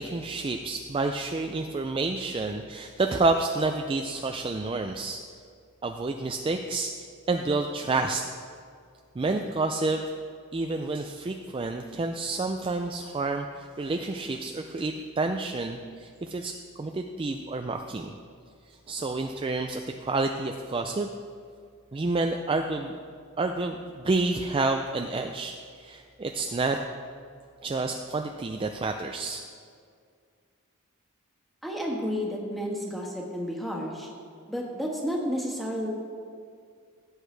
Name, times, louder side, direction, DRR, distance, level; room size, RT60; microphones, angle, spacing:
voice 1, 0.0-5.2 5.8-8.2 9.2-10.0 10.5-18.1 18.9-21.1 21.9-22.9 23.4-26.8 27.6-29.4, right 3 dB, 25° right, 4 dB, 0.3 m, -29 dB
voice 2, 31.6-34.1 34.5-35.9, equal, ahead, -2 dB, 1.5 m, -31 dB
16.5 x 8.2 x 3.3 m, 2.2 s
head